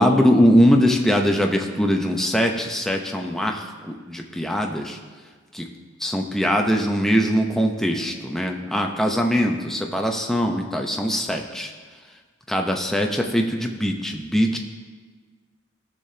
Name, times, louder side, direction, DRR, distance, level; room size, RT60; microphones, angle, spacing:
voice 1, 0.0-5.0 5.5-5.7 6.0-11.7 12.5-14.6, equal, ahead, 2 dB, 0.7 m, -21 dB
17.5 x 6.8 x 2.8 m, 1.5 s
head